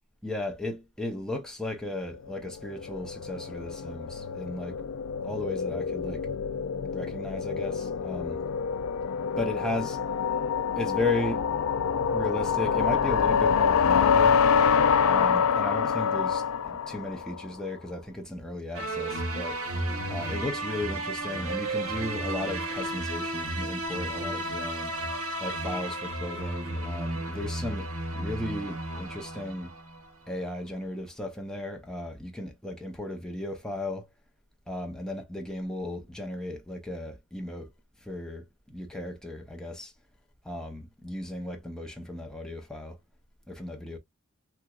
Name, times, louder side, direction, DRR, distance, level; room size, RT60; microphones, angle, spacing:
voice 1, 0.2-4.8 5.2-6.3 6.9-8.4 9.4-10.0 10.7-11.5 12.1-14.4 15.0-19.6 20.1-24.9 25.4-29.8 30.3-34.1 34.7-37.7 38.0-39.9 40.4-43.0 43.5-44.0, left 2 dB, 5° left, 0.6 m, -35 dB
sound 1, 2.3-17.5, left 6 dB, 65° left, 0.4 m, -26 dB
sound 2, 18.7-30.1, right 1 dB, 80° right, 1.0 m, -33 dB
3.3 x 2.9 x 2.3 m
head